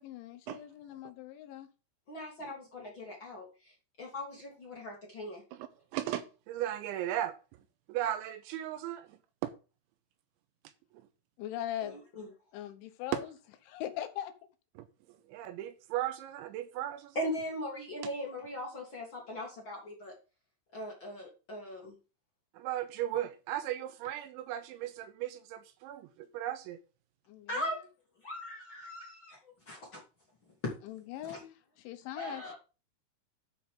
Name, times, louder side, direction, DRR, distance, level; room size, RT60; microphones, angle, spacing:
voice 1, 0.0-1.7 11.4-12.3 12.5-13.3 13.7-14.3 27.3-27.9 30.8-32.5, left 11 dB, 80° left, 3.2 m, -41 dB
voice 2, 2.1-3.5 4.0-5.4 11.8-12.3 17.1-20.1 20.7-21.9 27.5-27.8 28.2-29.4 29.7-30.0 30.6-30.7 31.3-31.4 32.2-32.5, left 1 dB, 45° left, 1.6 m, -39 dB
voice 3, 5.5-7.3 7.9-9.5 13.1-13.2 14.8-14.9 15.3-17.2 22.5-26.8, right 12 dB, 85° right, 2.9 m, -36 dB
12.5 x 6.1 x 3.6 m
omnidirectional pair, 5.6 m